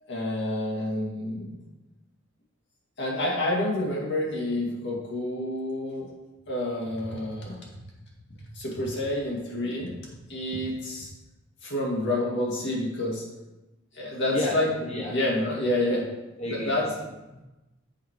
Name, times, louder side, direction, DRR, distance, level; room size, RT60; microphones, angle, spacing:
voice 1, 0.1-1.6 3.0-6.1 6.5-7.6 8.5-9.9 10.3-11.1 11.6-13.2 13.9-14.7 15.1-16.1 16.5-16.8, left 1 dB, 60° left, -2 dB, 2.1 m, -28 dB
voice 2, 14.9-15.2 16.4-17.4, left 2 dB, 30° left, -4 dB, 1.0 m, -32 dB
7.3 x 5.3 x 4.6 m, 1.0 s
head